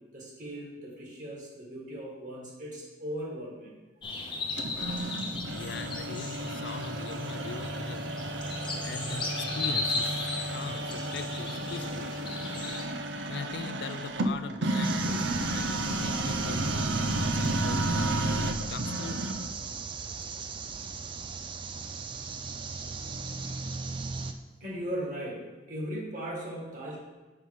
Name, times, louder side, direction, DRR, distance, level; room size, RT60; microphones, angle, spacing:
voice 1, 0.0-3.7 24.6-25.4 25.7-27.0, equal, 45° right, -4 dB, 2.0 m, -38 dB
sound 1, 4.0-12.8, left 3 dB, 25° left, 0.7 m, -36 dB
sound 2, 4.6-19.6, right 1 dB, 75° right, 0.6 m, -32 dB
voice 2, 5.5-8.1 8.8-12.1 13.3-17.8 18.7-19.3, left 5 dB, 60° left, 11 dB, 0.3 m, -41 dB
sound 3, 14.8-24.3, right 5 dB, 25° right, 0.3 m, -37 dB
5.7 x 5.4 x 4.7 m, 1.2 s
head